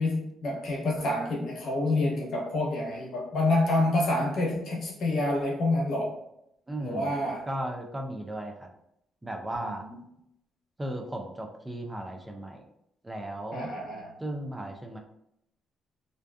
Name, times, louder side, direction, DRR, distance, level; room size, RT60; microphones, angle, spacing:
voice 1, 0.0-6.2 6.8-7.5 13.5-14.1, left 2 dB, 65° left, -1 dB, 0.9 m, -27 dB
voice 2, 6.7-7.1 7.5-8.7 9.2-9.9 10.8-12.6 13.0-13.7 14.2-15.0, right 1 dB, 15° right, 3 dB, 0.4 m, -35 dB
2.5 x 2.3 x 2.3 m, 0.76 s
cardioid pair, 90°, 0 cm